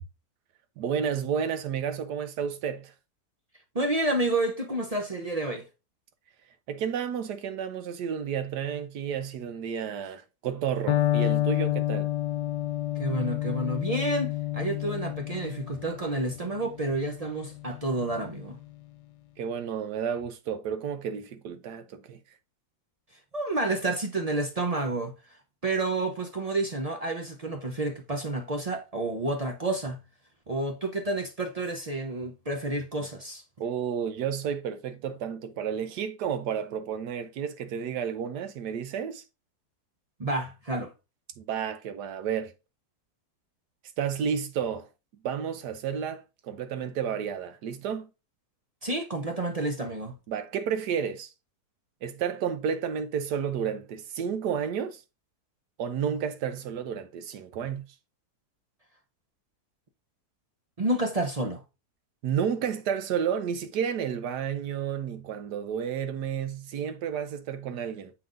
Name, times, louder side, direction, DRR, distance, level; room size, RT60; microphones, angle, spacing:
voice 1, 0.8-2.9 6.7-12.1 19.4-22.2 33.6-39.2 41.4-42.5 44.0-44.9 45.2-48.1 50.3-51.3 52.0-55.0 55.8-57.8 62.2-68.1, right 7 dB, 90° right, 1.4 m, -31 dB
voice 2, 3.7-5.6 13.0-18.6 23.3-25.1 25.6-30.0 30.5-33.4 40.2-40.9 48.8-50.2 60.8-61.6, right 2 dB, 40° right, 0.5 m, -30 dB
Electric guitar, 10.9-18.7, left 15 dB, 85° left, 1.2 m, -30 dB
6.8 x 5.6 x 2.6 m
omnidirectional pair, 1.7 m